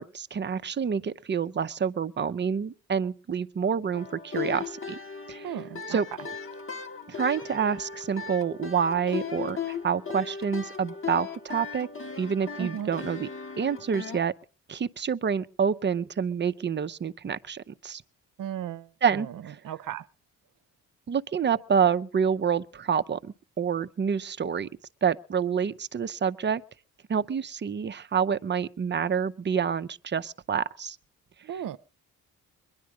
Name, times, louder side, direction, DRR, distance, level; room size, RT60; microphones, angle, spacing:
voice 1, 0.0-5.0 5.3-5.5 5.9-6.1 7.1-11.9 12.2-13.3 13.6-14.3 14.7-18.0 19.0-19.6 21.1-24.7 25.0-26.6 27.1-31.0, right 7 dB, 30° right, 0.6 m, -28 dB
sound 1, 3.9-14.2, left 6 dB, 35° left, 1.2 m, -37 dB
voice 2, 5.4-6.0 12.6-12.9 18.4-19.3 19.6-20.1 31.4-31.8, right 10 dB, 65° right, 0.8 m, -35 dB
22.0 x 10.5 x 4.9 m
cardioid pair, 70°, 35 cm